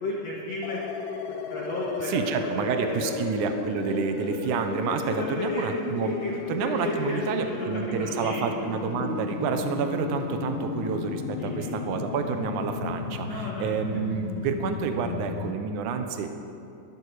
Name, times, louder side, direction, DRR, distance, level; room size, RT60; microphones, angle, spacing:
voice 1, 0.0-0.8 1.5-3.1 4.9-5.7 6.0-8.4 11.4-11.7 13.3-14.1, left 2 dB, 50° left, -6 dB, 2.8 m, -34 dB
sound 1, 0.6-15.5, left 6 dB, 75° left, 2.4 m, -34 dB
voice 2, 2.0-6.2 6.5-16.3, right 6 dB, 70° right, 6 dB, 2.4 m, -29 dB
22.0 x 12.0 x 4.9 m, 2.7 s
omnidirectional pair, 4.0 m